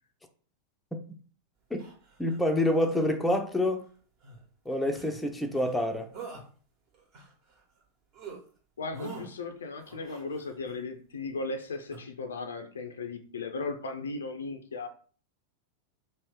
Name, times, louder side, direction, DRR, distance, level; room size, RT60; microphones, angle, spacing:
sound 1, 1.8-2.4 2.9-3.1 4.2-4.4 4.9-5.2 5.5-5.8 6.1-6.5 6.9-7.8 8.1-8.4 8.9-9.3 9.8-10.8 11.9-12.0, right 4 dB, 40° right, 1.1 m, -45 dB
voice 1, 2.2-3.9 4.7-6.1, left 1 dB, 5° left, 0.5 m, -27 dB
voice 2, 8.8-14.9, left 3 dB, 70° left, 0.5 m, -36 dB
3.0 x 2.6 x 3.6 m
figure-of-eight pair, 90°, 0 cm